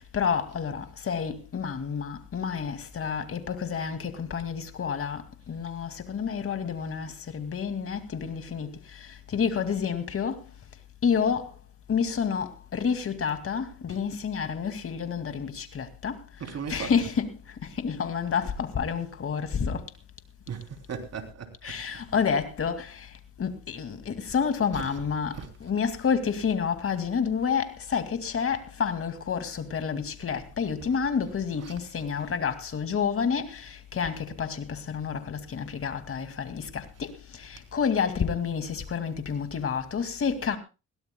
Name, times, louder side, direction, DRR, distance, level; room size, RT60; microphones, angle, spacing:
voice 1, 0.0-5.2 5.5-10.4 11.0-11.5 11.9-16.2 16.7-17.3 17.6-19.8 21.6-23.1 23.4-40.6, left 6 dB, 45° left, 2.4 m, -29 dB
voice 2, 16.4-17.0 20.5-21.8 24.7-25.0 25.3-25.5 30.2-30.4 30.9-31.0 31.6-31.8, right 6 dB, 55° right, 3.5 m, -38 dB
21.5 x 17.0 x 2.3 m
cardioid pair, 90°, 30 cm